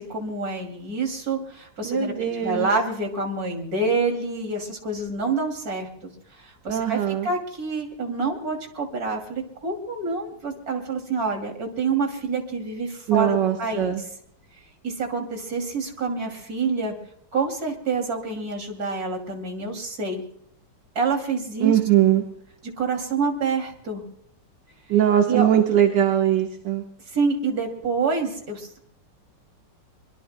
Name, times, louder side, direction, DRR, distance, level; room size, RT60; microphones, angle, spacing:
voice 1, 0.0-5.9 6.4-13.9 14.8-16.9 17.3-20.2 20.9-22.0 22.8-24.0 25.3-25.5 27.1-28.8, right 4 dB, 50° right, 3 dB, 3.2 m, -27 dB
voice 2, 1.8-2.7 6.7-7.3 13.1-14.0 21.6-22.2 24.9-26.8, right 10 dB, 70° right, 4 dB, 1.8 m, -21 dB
25.0 x 22.5 x 2.2 m, 0.69 s
omnidirectional pair, 2.0 m